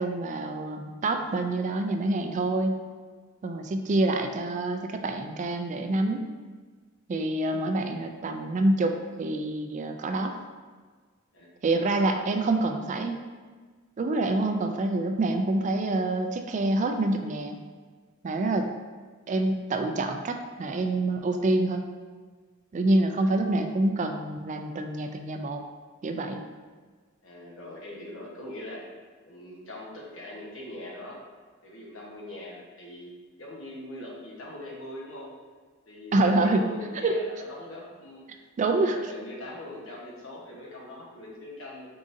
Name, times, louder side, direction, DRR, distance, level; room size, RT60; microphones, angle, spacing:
voice 1, 0.0-2.8 3.4-6.2 7.1-10.3 11.6-13.2 14.0-17.6 18.2-18.7 19.3-21.8 22.7-25.6 26.0-26.4 36.1-36.6 37.0-37.2 38.6-39.0, right 2 dB, 35° right, 5 dB, 0.3 m, -26 dB
voice 2, 7.5-7.8 11.3-11.5 23.0-23.5 27.2-28.9 29.2-31.2 31.6-33.1 33.4-35.3 35.8-38.4 38.8-41.9, left 1 dB, 75° left, -3 dB, 1.1 m, -42 dB
5.0 x 3.8 x 2.6 m, 1.5 s
head